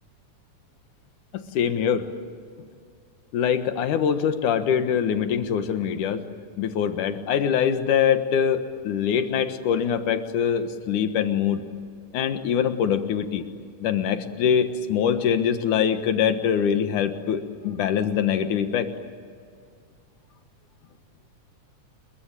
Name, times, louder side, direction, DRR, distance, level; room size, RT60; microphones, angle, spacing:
voice 1, 1.5-2.1 2.6-2.7 3.3-6.2 6.6-11.6 12.1-13.4 13.8-18.9, left 8 dB, 80° left, 9 dB, 2.9 m, -23 dB
29.0 x 22.5 x 9.1 m, 2.2 s
omnidirectional pair, 3.6 m